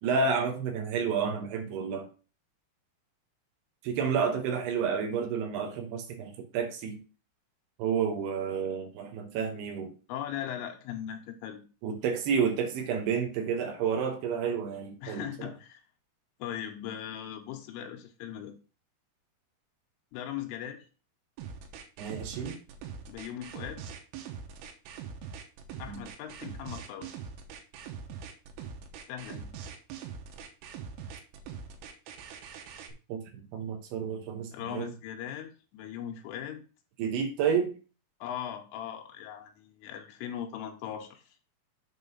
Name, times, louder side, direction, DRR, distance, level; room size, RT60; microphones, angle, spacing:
voice 1, 0.0-2.1 3.8-7.0 7.8-9.9 11.8-15.5 22.0-22.6 25.9-26.0 33.1-33.2 33.5-34.9 37.0-37.7, right 6 dB, 75° right, 5 dB, 2.6 m, -30 dB
voice 2, 10.1-11.6 15.0-15.8 16.4-18.5 20.1-20.8 23.1-23.8 25.8-27.1 29.1-29.5 34.5-36.6 38.2-41.2, left 10 dB, 90° left, 3 dB, 3.4 m, -39 dB
sound 1, 21.4-32.9, right 7 dB, 90° right, 3.7 m, -42 dB
7.9 x 3.7 x 5.6 m, 0.35 s
omnidirectional pair, 5.7 m